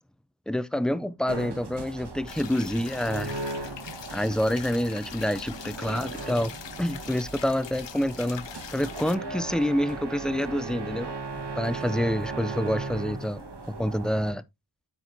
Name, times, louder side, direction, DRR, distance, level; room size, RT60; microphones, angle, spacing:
voice 1, 0.5-3.4 4.1-6.5 6.8-8.4 8.7-11.1 11.6-13.4 13.7-14.4, equal, ahead, 0.3 m, -27 dB
sound 1, 1.3-14.3, right 3 dB, 60° right, 1.3 m, -37 dB
sound 2, 2.3-9.1, left 9 dB, 70° left, 0.6 m, -43 dB
8.4 x 4.4 x 2.6 m
wide cardioid pair, 70°, 45 cm